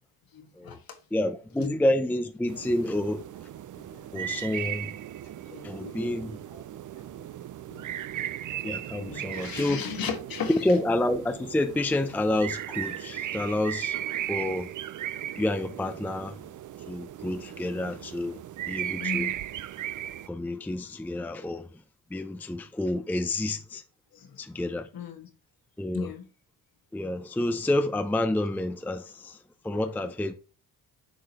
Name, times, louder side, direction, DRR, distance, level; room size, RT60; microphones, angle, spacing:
voice 1, 0.3-1.0 1.6-1.8 3.8-4.4 5.4-6.0 6.5-6.6 7.2-7.3 7.7-8.3 9.0-10.5 19.0-19.3 24.1-24.4 24.9-25.3 25.9-26.3 29.7-29.8, left 6 dB, 55° left, 1.7 m, -37 dB
voice 2, 1.1-3.2 4.1-4.9 5.6-6.4 8.6-9.8 10.5-14.7 15.4-16.5 16.9-18.4 18.7-19.3 20.3-21.8 22.1-23.8 24.4-24.9 25.8-26.1 26.9-30.3, left 1 dB, 5° left, 0.5 m, -29 dB
sound 1, 2.5-20.3, right 12 dB, 50° right, 0.6 m, -37 dB
7.8 x 4.8 x 2.9 m
cardioid pair, 85°, 41 cm